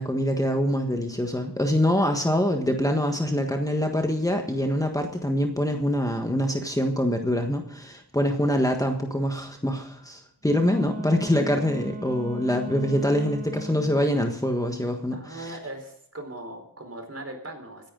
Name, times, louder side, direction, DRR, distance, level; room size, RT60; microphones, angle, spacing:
voice 1, 0.0-15.6, equal, 10° left, 4 dB, 1.5 m, -25 dB
Wind instrument woodwind instrument, 10.4-14.1, right 1 dB, 20° right, 2.0 m, -38 dB
voice 2, 15.1-17.9, right 1 dB, 45° right, 4 dB, 4.3 m, -39 dB
25.5 x 10.5 x 3.9 m, 0.68 s
wide cardioid pair, 80°, 34 cm